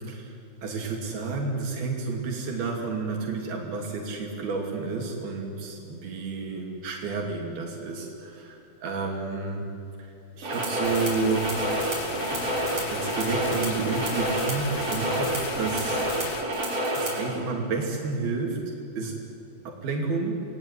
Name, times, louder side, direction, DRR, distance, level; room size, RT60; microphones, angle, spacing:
voice 1, 0.6-9.7 10.3-11.5 12.9-16.0 16.9-18.6 19.0-19.2 19.6-20.4, right 4 dB, 85° right, 0 dB, 4.7 m, -30 dB
sound 1, 10.4-17.3, right 1 dB, 40° right, 6.0 m, -28 dB
sound 2, 10.8-16.4, left 6 dB, 60° left, 2.0 m, -37 dB
29.0 x 19.5 x 10.0 m, 2.8 s
omnidirectional pair, 4.2 m